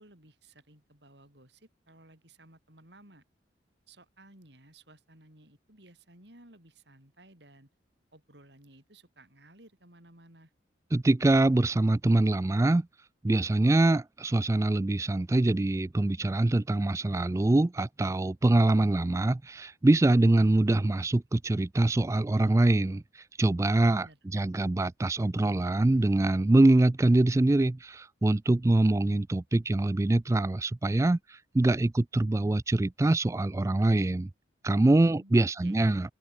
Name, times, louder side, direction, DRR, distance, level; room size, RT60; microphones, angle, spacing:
voice 1, 0.0-3.2 3.9-7.7 8.1-10.5 23.9-24.6 35.1-36.0, right 1 dB, 60° right, 6.1 m, -56 dB
voice 2, 10.9-12.9 13.2-23.0 23.4-34.3 34.6-36.1, right 2 dB, 15° right, 0.3 m, -24 dB
open air
head